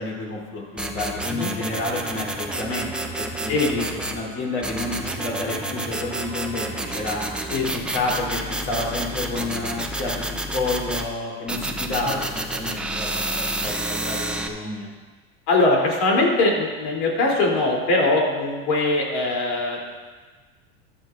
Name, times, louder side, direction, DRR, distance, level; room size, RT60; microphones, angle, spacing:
voice 1, 0.0-7.2 7.7-14.9, left 2 dB, 45° left, -3 dB, 3.6 m, -30 dB
sound 1, 0.8-4.2 4.6-11.1 11.5-14.5, right 1 dB, 5° right, 0.6 m, -29 dB
sound 2, 2.5-9.6, right 6 dB, 80° right, 1.5 m, -42 dB
voice 2, 15.5-19.9, left 2 dB, 75° left, -2 dB, 3.4 m, -21 dB
14.0 x 11.5 x 2.6 m, 1.4 s
supercardioid pair, 135°, 31 cm